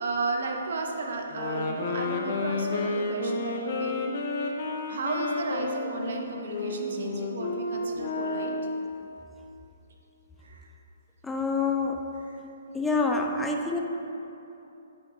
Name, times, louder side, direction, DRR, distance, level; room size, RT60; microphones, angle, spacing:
voice 1, 0.0-3.9 4.9-8.5 10.4-10.7 12.2-12.4, right 3 dB, 65° right, 1 dB, 0.8 m, -33 dB
sound 1, 1.3-8.9, left 3 dB, 50° left, 0.6 m, -31 dB
voice 2, 11.2-12.0 12.7-13.8, left 4 dB, 5° left, 2 dB, 0.4 m, -26 dB
8.5 x 4.9 x 2.6 m, 2.9 s
hypercardioid pair, 140°, 0 cm